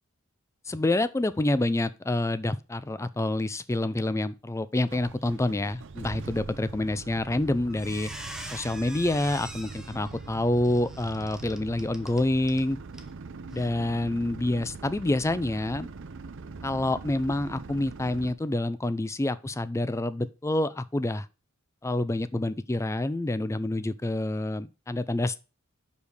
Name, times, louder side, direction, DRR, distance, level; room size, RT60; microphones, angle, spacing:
voice 1, 0.7-8.1 8.5-12.8 13.5-15.9 16.6-21.3 21.8-25.4, left 1 dB, 15° left, 0.4 m, -27 dB
sound 1, 4.9-18.3, right 4 dB, 60° right, 0.6 m, -42 dB
Squeak, 7.1-7.4 7.7-12.6 12.9-13.1 13.5-13.7, right 1 dB, 5° right, 0.9 m, -43 dB
5.2 x 5.1 x 6.3 m
head